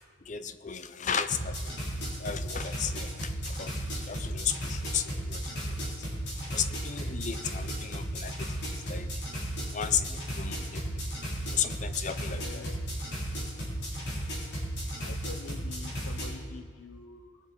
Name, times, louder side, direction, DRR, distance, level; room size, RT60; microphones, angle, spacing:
voice 1, 0.0-1.7 2.2-5.9 6.5-9.1 9.7-11.0 11.5-12.6, left 8 dB, 35° left, 11 dB, 0.5 m, -34 dB
sound 1, 1.3-16.3, equal, 55° left, 3.9 m, -35 dB
voice 2, 12.2-12.8 15.0-17.4, left 4 dB, 90° left, 6 dB, 0.7 m, -46 dB
20.0 x 7.3 x 4.4 m, 2.1 s
head